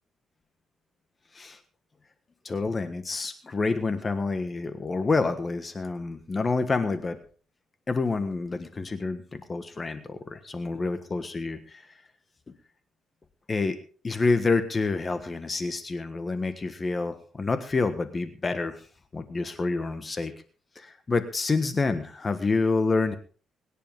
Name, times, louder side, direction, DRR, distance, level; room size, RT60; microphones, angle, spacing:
voice 1, 2.4-7.2 7.9-11.9 13.5-13.8 14.0-18.8 19.1-20.3 20.7-23.2, left 3 dB, 30° left, 9 dB, 1.5 m, -28 dB
22.5 x 10.0 x 3.7 m, 0.39 s
cardioid pair, 90°, 0 cm